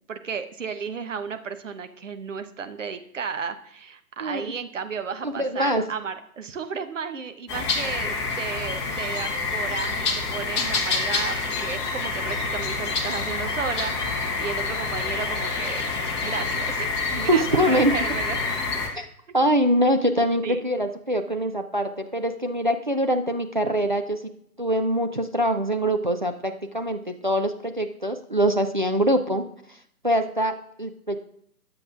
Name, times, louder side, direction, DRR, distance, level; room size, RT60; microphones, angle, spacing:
voice 1, 0.1-15.9 16.2-18.4 20.4-20.6, right 6 dB, 50° right, 8 dB, 1.0 m, -33 dB
voice 2, 4.2-4.5 5.2-5.9 17.3-17.9 18.9-19.1 19.3-24.2 24.6-29.4 29.7-29.8 30.0-31.2, equal, 35° right, 6 dB, 0.4 m, -24 dB
sound 1, 7.5-18.9, left 4 dB, 20° left, 1.2 m, -27 dB
20.0 x 7.7 x 2.5 m, 0.69 s
figure-of-eight pair, 140°, 47 cm